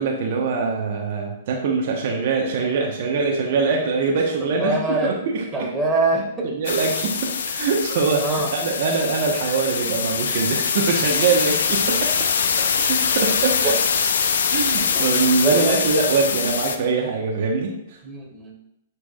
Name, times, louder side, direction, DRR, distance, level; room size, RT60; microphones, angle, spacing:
voice 1, 0.0-5.7 6.4-7.1 7.5-12.3 12.8-13.7 14.5-18.0, right 4 dB, 55° right, 0 dB, 1.1 m, -23 dB
voice 2, 4.4-5.2 5.5-6.5 8.2-8.5 11.2-11.3 13.6-13.7 14.9-15.0 15.4-15.8 18.0-18.5, right 2 dB, 10° right, -3 dB, 1.9 m, -24 dB
sound 1, 6.6-16.8, left 6 dB, 70° left, 0.6 m, -23 dB
9.7 x 4.7 x 2.4 m, 0.78 s
hypercardioid pair, 120°, 0 cm